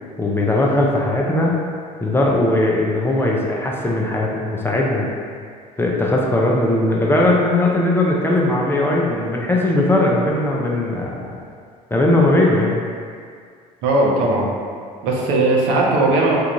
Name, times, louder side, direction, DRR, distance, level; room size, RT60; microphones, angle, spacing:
voice 1, 0.2-1.6 2.0-5.1 5.8-11.4 11.9-12.8, left 1 dB, 10° left, -3 dB, 0.5 m, -18 dB
voice 2, 13.8-14.5 15.0-16.4, right 2 dB, 60° right, -2 dB, 0.7 m, -17 dB
3.4 x 2.4 x 2.9 m, 2.1 s
hypercardioid pair, 65°, 20 cm